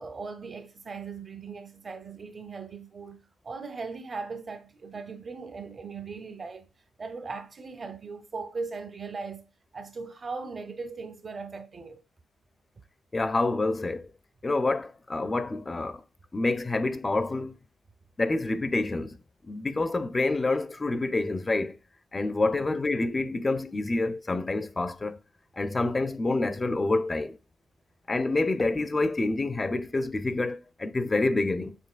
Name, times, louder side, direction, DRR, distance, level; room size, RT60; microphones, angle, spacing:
voice 1, 0.0-3.2 3.4-6.7 7.0-9.4 9.7-12.0, right 4 dB, 35° right, 0.6 m, -38 dB
voice 2, 13.1-14.1 14.4-16.0 16.3-17.5 18.2-19.2 19.4-21.8 22.1-25.2 25.5-27.4 28.1-31.8, left 2 dB, 20° left, 0.4 m, -27 dB
6.3 x 2.7 x 2.4 m
cardioid pair, 115°, 0 cm